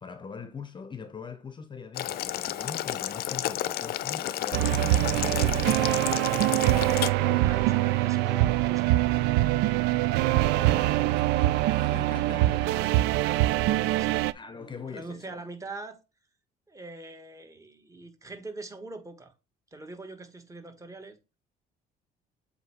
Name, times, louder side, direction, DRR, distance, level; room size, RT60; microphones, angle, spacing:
voice 1, 0.0-6.6 7.2-7.5 10.3-13.1 14.3-15.4, left 5 dB, 30° left, 0.7 m, -42 dB
Boiling, 1.9-7.1, left 13 dB, 65° left, 0.5 m, -32 dB
sound 1, 4.2-9.2, right 5 dB, ahead, 1.5 m, -46 dB
sound 2, 4.5-14.3, right 16 dB, 90° right, 0.4 m, -24 dB
voice 2, 7.4-9.0 12.9-14.1 14.5-16.0 16.7-19.3 19.7-21.2, right 3 dB, 20° right, 1.4 m, -43 dB
7.7 x 2.7 x 4.8 m
cardioid pair, 110°, 17 cm